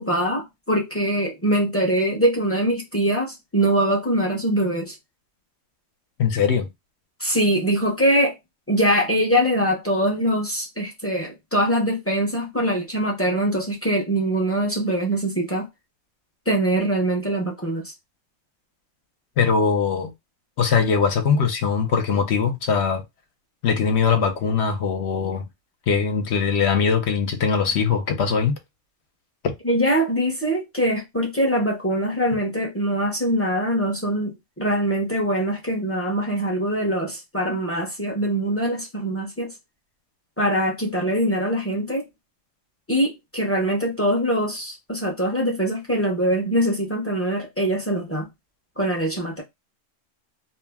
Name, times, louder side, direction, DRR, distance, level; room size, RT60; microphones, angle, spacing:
voice 1, 0.0-5.0 7.2-8.4 8.7-15.7 16.5-17.9 29.6-39.5 40.4-42.1 42.9-48.3 48.8-49.4, right 1 dB, 20° left, 0.4 m, -23 dB
voice 2, 6.2-6.7 19.4-20.1 20.6-23.0 23.6-25.4 25.9-28.6, left 6 dB, 65° left, 0.8 m, -21 dB
2.6 x 2.0 x 3.4 m
omnidirectional pair, 1.4 m